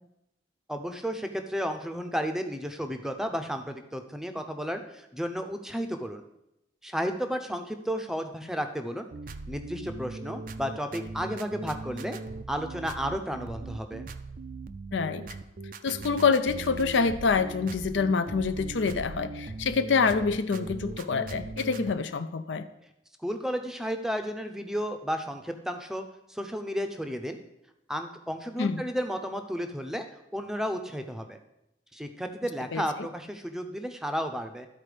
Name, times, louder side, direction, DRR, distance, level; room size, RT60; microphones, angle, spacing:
voice 1, 0.7-6.2 6.8-9.1 9.5-12.2 12.5-14.0 23.2-27.4 27.9-30.1 30.3-31.4 31.9-34.7, equal, 5° right, 6 dB, 0.6 m, -33 dB
sound 1, 9.1-21.9, right 3 dB, 45° right, 0.4 m, -39 dB
voice 2, 14.9-15.2 15.8-22.7 28.6-28.8 32.7-33.1, left 5 dB, 80° left, 10 dB, 0.5 m, -26 dB
12.5 x 4.3 x 5.0 m, 0.87 s
head